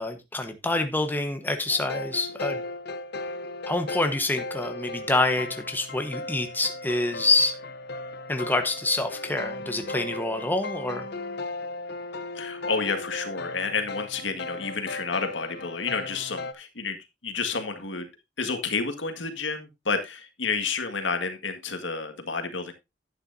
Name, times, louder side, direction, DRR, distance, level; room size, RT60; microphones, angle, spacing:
voice 1, 0.0-2.6 3.7-7.6 8.3-11.1, left 2 dB, 10° left, 1.2 m, -26 dB
sound 1, 1.7-16.5, left 2 dB, 60° left, 0.9 m, -36 dB
voice 2, 12.4-17.0 17.2-18.1 18.4-22.7, left 4 dB, 75° left, 1.8 m, -30 dB
11.5 x 9.0 x 2.7 m
head